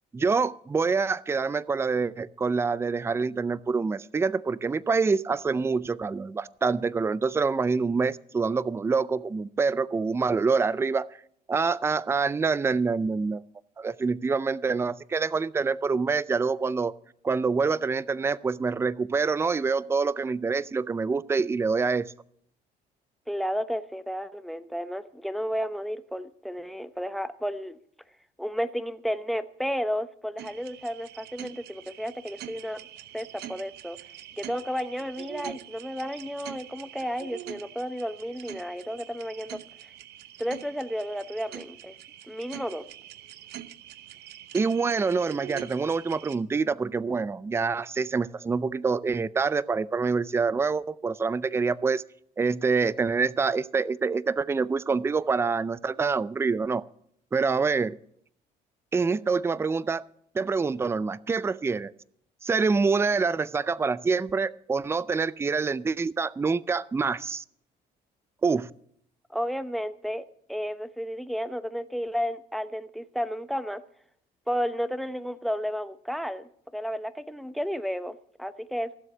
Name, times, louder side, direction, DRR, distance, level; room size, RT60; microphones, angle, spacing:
voice 1, 0.1-11.1 11.5-13.4 13.8-16.9 17.2-22.1 44.5-52.0 52.4-56.8 57.3-58.0 58.9-60.0 60.3-61.9 62.4-67.4 68.4-68.7, right 4 dB, 15° right, 19 dB, 0.4 m, -26 dB
voice 2, 23.3-27.8 28.4-32.8 33.1-34.0 34.4-39.9 40.4-41.9 42.3-42.8 69.3-73.8 74.5-78.9, equal, ahead, 13 dB, 0.8 m, -32 dB
sound 1, 30.4-46.4, right 12 dB, 75° right, 0.9 m, -44 dB
15.5 x 7.7 x 6.8 m, 0.69 s
cardioid pair, 110°, 17 cm